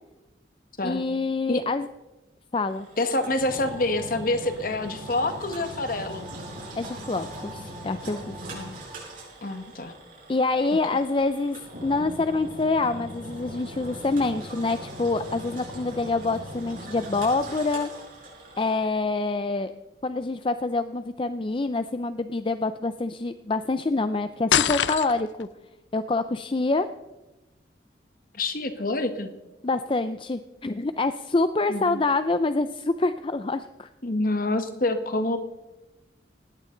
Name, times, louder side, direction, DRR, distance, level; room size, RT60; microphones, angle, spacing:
voice 1, 0.8-1.9 2.5-2.9 6.8-8.5 10.3-17.9 18.6-19.7 20.0-25.5 25.9-26.9 29.6-33.9, left 3 dB, 30° left, 11 dB, 0.5 m, -26 dB
Engine, 2.7-18.8, equal, 50° right, 6.7 m, -40 dB
voice 2, 3.0-6.3 8.5-8.8 9.4-9.9 10.9-11.0 28.3-29.3 31.7-32.0 34.0-35.4, left 2 dB, 50° left, 8 dB, 1.5 m, -27 dB
sound 1, 3.4-9.0, right 2 dB, 15° right, 2.9 m, -49 dB
sound 2, 24.5-25.5, left 9 dB, 90° left, 0.6 m, -23 dB
19.5 x 16.5 x 3.9 m, 1.0 s
head